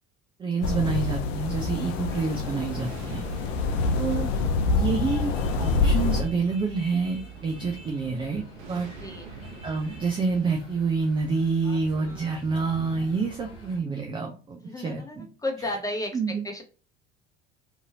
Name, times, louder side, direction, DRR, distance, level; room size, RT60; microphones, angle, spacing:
voice 1, 0.4-3.2 4.0-4.3 4.7-5.3 5.6-8.9 9.6-15.3 16.1-16.5, right 4 dB, 15° right, 3 dB, 0.4 m, -28 dB
sound 1, 0.6-6.2, left 4 dB, 60° left, 0.6 m, -26 dB
Thunder, 1.3-12.2, right 4 dB, 50° right, 0.8 m, -47 dB
sound 2, 2.7-13.8, right 1 dB, 90° left, 0.9 m, -44 dB
voice 2, 9.0-9.3 14.6-16.2 16.4-16.6, left 1 dB, 10° left, 2 dB, 0.9 m, -33 dB
2.6 x 2.6 x 2.7 m, 0.37 s
figure-of-eight pair, 60°, 36 cm